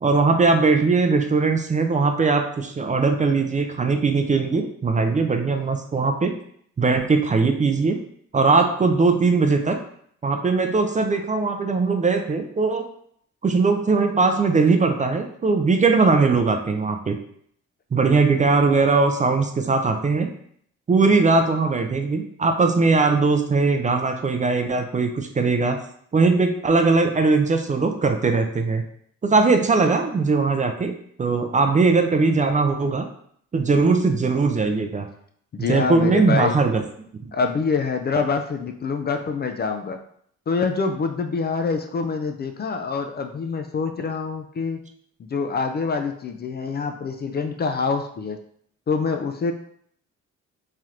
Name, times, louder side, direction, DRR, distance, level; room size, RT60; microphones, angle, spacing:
voice 1, 0.0-6.4 6.8-8.0 8.3-9.8 10.2-12.9 13.4-17.2 17.9-20.3 20.9-25.8 26.1-28.8 29.2-33.1 33.5-35.1 35.7-36.8 37.2-37.3, right 4 dB, 25° right, 6 dB, 0.4 m, -20 dB
voice 2, 35.5-36.6 37.3-40.0 40.5-44.8 45.2-48.4 48.9-49.5, left 5 dB, 35° left, 6 dB, 0.4 m, -25 dB
3.2 x 2.9 x 3.7 m, 0.65 s
cardioid pair, 90°, 30 cm